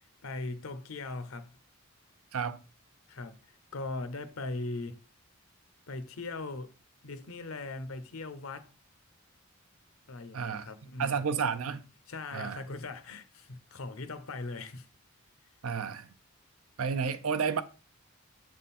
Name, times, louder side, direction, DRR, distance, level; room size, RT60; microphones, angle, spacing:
voice 1, 0.2-1.6 3.1-5.0 5.9-6.7 7.0-8.7 10.1-11.2 12.1-14.9, left 3 dB, 75° left, 0.7 m, -39 dB
voice 2, 10.3-10.7 11.0-11.8 12.3-12.6 15.6-16.1 16.8-17.6, right 6 dB, 80° right, 0.6 m, -31 dB
7.5 x 3.7 x 4.2 m
head